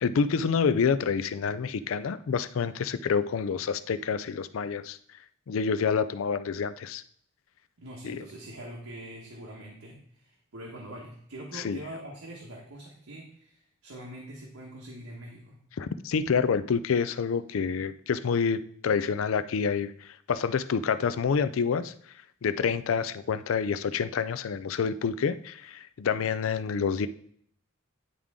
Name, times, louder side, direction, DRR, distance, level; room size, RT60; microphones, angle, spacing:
voice 1, 0.0-5.0 5.5-7.0 8.0-8.2 11.5-11.8 15.8-21.9 22.4-27.1, left 6 dB, 75° left, 13 dB, 0.4 m, -28 dB
voice 2, 7.8-15.6, right 1 dB, 85° right, -2 dB, 1.2 m, -44 dB
9.8 x 3.7 x 3.6 m, 0.62 s
head